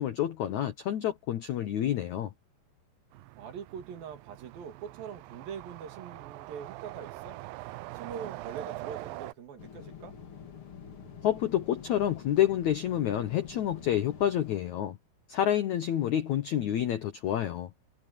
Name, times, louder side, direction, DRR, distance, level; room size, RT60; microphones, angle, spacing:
voice 1, 0.0-2.3 11.2-15.0 15.3-17.7, left 11 dB, 75° left, 1.7 m, -28 dB
sound 1, 3.1-9.3, right 18 dB, 85° right, 2.0 m, -43 dB
voice 2, 3.4-7.4 7.9-10.1, right 7 dB, 60° right, 3.9 m, -43 dB
sound 2, 9.6-14.6, left 7 dB, 40° left, 2.2 m, -47 dB
omnidirectional pair, 4.8 m